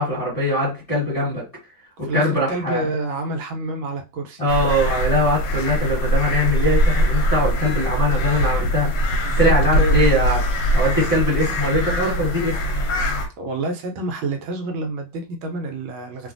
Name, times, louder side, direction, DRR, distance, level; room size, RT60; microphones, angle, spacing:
voice 1, 0.0-1.4 2.0-2.8 4.4-8.9 9.4-10.4 10.7-12.6, left 1 dB, 20° left, 1.3 m, -21 dB
voice 2, 2.1-4.4 9.3-10.0 12.9-13.1 13.4-16.3, right 2 dB, 80° right, 1.4 m, -28 dB
sound 1, 4.5-13.3, equal, 75° left, 1.2 m, -21 dB
3.1 x 2.3 x 2.5 m
omnidirectional pair, 2.2 m